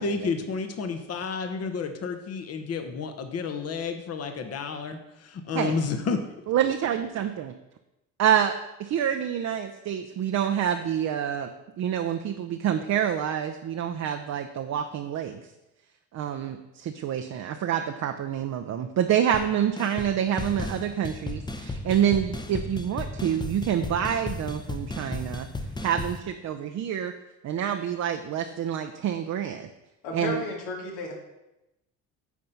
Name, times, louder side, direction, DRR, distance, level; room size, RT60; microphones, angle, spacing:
voice 1, 0.0-6.2, left 5 dB, 40° left, 7 dB, 1.0 m, -31 dB
voice 2, 6.5-7.5 8.2-11.5 11.8-15.4 16.1-25.5 25.8-27.1 27.4-29.7 30.1-30.4, right 9 dB, 45° right, 6 dB, 0.6 m, -27 dB
sound 1, 19.3-19.5 19.8-20.1 20.4-26.2, left 2 dB, 10° left, 0.8 m, -34 dB
voice 3, 30.0-31.1, left 3 dB, 75° left, 1 dB, 2.1 m, -33 dB
9.4 x 4.3 x 5.4 m, 0.94 s
supercardioid pair, 75°, 37 cm